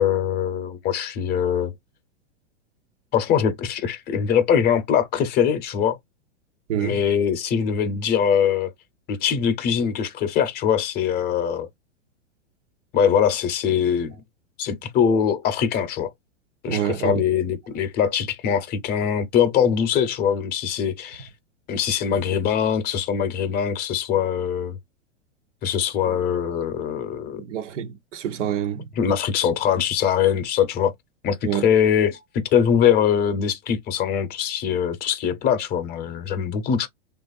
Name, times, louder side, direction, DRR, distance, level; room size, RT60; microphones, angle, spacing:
voice 1, 0.0-1.7 3.1-6.0 6.8-8.7 9.1-11.7 12.9-14.1 14.6-16.1 16.6-21.3 21.7-24.8 25.6-27.4 29.0-30.9 31.2-36.9, left 8 dB, 25° left, 0.7 m, -22 dB
voice 2, 16.7-17.2 26.0-26.2 27.4-28.8 31.4-31.7, right 10 dB, 75° right, 0.8 m, -27 dB
3.1 x 2.4 x 2.4 m
hypercardioid pair, 140°, 36 cm